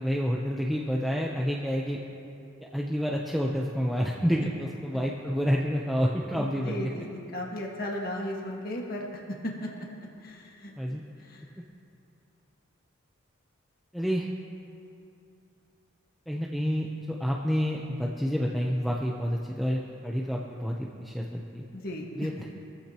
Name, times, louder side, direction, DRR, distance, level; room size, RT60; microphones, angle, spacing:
voice 1, 0.0-2.0 2.6-6.9 10.8-11.0 13.9-14.3 16.3-21.6 22.1-22.5, equal, ahead, -2 dB, 0.7 m, -29 dB
voice 2, 6.3-9.9 10.2-10.7 11.2-11.4 21.7-22.3, left 1 dB, 45° left, -1 dB, 1.6 m, -36 dB
23.5 x 14.5 x 3.0 m, 2.6 s
head